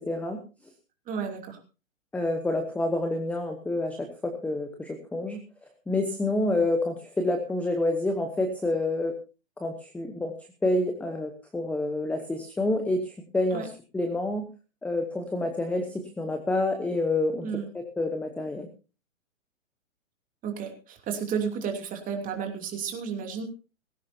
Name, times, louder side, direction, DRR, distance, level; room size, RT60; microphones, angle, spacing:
voice 1, 0.1-0.4 2.1-9.1 9.6-10.3 10.6-14.5 14.8-17.5 18.0-18.7, left 2 dB, 5° left, 6 dB, 1.0 m, -28 dB
voice 2, 1.1-1.6 13.5-13.7 17.4-17.7 20.4-23.4, right 6 dB, 20° right, 3 dB, 2.9 m, -32 dB
18.5 x 16.0 x 2.8 m, 0.32 s
hypercardioid pair, 135°, 40 cm